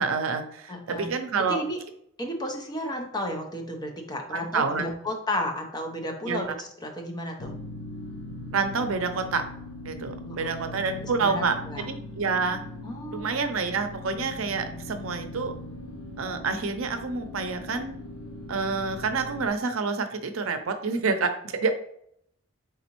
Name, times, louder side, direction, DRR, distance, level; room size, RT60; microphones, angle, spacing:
voice 1, 0.0-1.6 4.3-4.9 6.3-6.4 8.5-9.4 9.8-11.5 11.9-12.6 13.1-15.5 16.2-17.9 18.5-21.7, right 4 dB, 80° right, 8 dB, 0.5 m, -28 dB
voice 2, 0.7-1.1 1.4-1.8 2.2-7.5 10.2-11.8 12.8-13.6, left 1 dB, 20° left, 3 dB, 0.6 m, -33 dB
sound 1, 7.4-19.5, left 1 dB, 85° left, 0.7 m, -40 dB
4.1 x 3.6 x 3.0 m, 0.69 s
head